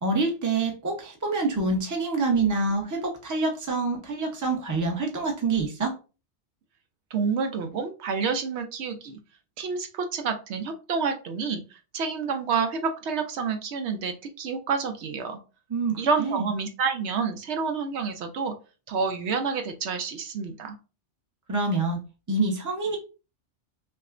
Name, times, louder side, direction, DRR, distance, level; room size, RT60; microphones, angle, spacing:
voice 1, 0.0-5.9 15.7-16.5 21.5-22.0 22.3-23.0, right 3 dB, 20° right, 2 dB, 0.6 m, -26 dB
voice 2, 7.1-9.2 9.6-15.4 16.0-18.5 18.9-20.8, right 5 dB, 70° right, 6 dB, 0.9 m, -29 dB
5.7 x 2.1 x 2.5 m, 0.33 s
omnidirectional pair, 1.2 m